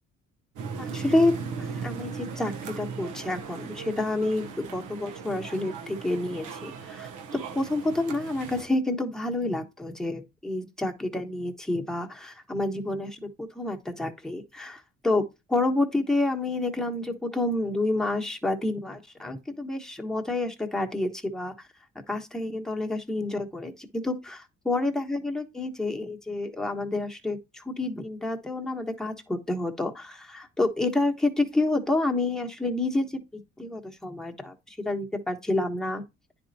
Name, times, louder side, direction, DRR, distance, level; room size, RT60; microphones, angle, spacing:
sound 1, 0.6-8.7, right 5 dB, 80° right, 1.0 m, -38 dB
voice 1, 0.8-1.3 1.6-15.2 15.5-21.5 22.1-36.0, left 2 dB, ahead, 1.2 m, -29 dB
9.7 x 4.3 x 2.7 m
cardioid pair, 90°, 30 cm